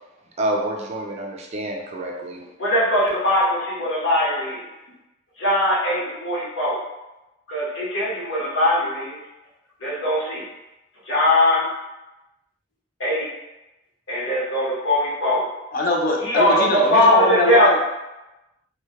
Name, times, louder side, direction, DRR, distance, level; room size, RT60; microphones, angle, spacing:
voice 1, 0.4-2.4, right 1 dB, 35° right, 0 dB, 0.4 m, -27 dB
voice 2, 2.6-4.6 5.4-6.8 7.5-9.2 9.8-10.4 11.1-11.7 13.0-13.3 14.1-15.5 16.2-17.7, left 1 dB, 75° left, -6 dB, 0.8 m, -20 dB
voice 3, 15.7-17.8, left 2 dB, 50° left, 0 dB, 0.4 m, -22 dB
2.1 x 2.1 x 2.8 m, 0.99 s
head